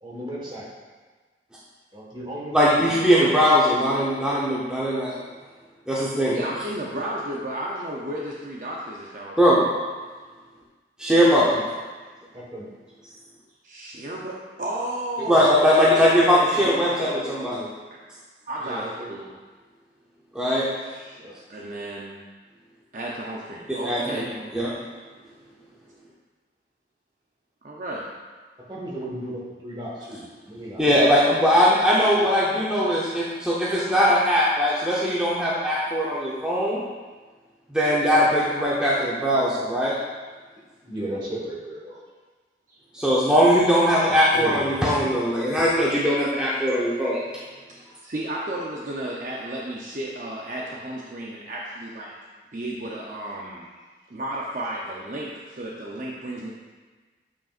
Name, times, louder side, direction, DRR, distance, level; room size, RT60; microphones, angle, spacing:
voice 1, 0.0-0.7 1.9-3.1 12.3-12.7 15.3-17.6 18.6-19.1 21.2-21.3 28.7-30.8 40.8-42.0 44.1-45.0, right 1 dB, 25° right, -5 dB, 1.4 m, -35 dB
voice 2, 2.5-5.1 5.9-6.4 9.4-9.6 11.0-11.6 15.3-17.7 20.3-20.7 23.7-24.2 24.5-24.7 30.8-36.8 37.7-40.0 42.9-47.2, equal, 5° right, -7 dB, 0.7 m, -20 dB
voice 3, 6.3-9.4 9.6-9.8 13.6-16.1 17.9-18.0 18.5-18.8 19.1-19.3 20.8-21.2 21.5-22.2 22.9-24.3 27.6-28.0 42.7-42.8 48.0-52.1 52.5-53.7 54.1-56.5, right 1 dB, 45° right, -4 dB, 0.6 m, -33 dB
8.6 x 5.1 x 2.5 m, 1.4 s
head